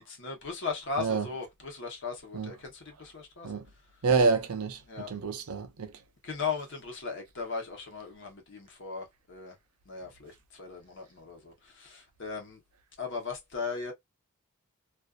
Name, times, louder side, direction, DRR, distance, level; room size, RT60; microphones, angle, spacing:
voice 1, 0.0-3.5 4.9-5.1 6.2-9.5 9.9-12.6 13.0-13.9, left 5 dB, 55° left, 0.9 m, -37 dB
voice 2, 4.0-5.9, right 4 dB, 80° right, 0.6 m, -28 dB
2.5 x 2.4 x 2.3 m
head